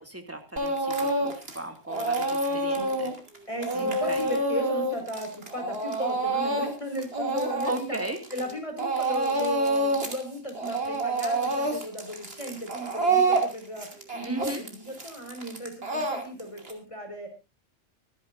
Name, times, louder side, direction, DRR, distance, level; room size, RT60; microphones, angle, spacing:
voice 1, 0.1-3.1 3.7-4.2 7.7-8.2 14.2-14.6, right 1 dB, 10° right, 6 dB, 2.4 m, -36 dB
Speech / Crying sobbing, 0.6-1.6 1.9-8.5 8.8-10.2 10.5-16.7, right 2 dB, 50° right, 3.0 m, -27 dB
voice 2, 2.5-2.9 3.5-8.0 8.3-17.3, equal, 25° left, 4 dB, 4.9 m, -36 dB
25.5 x 10.5 x 2.6 m, 0.28 s
omnidirectional pair, 1.3 m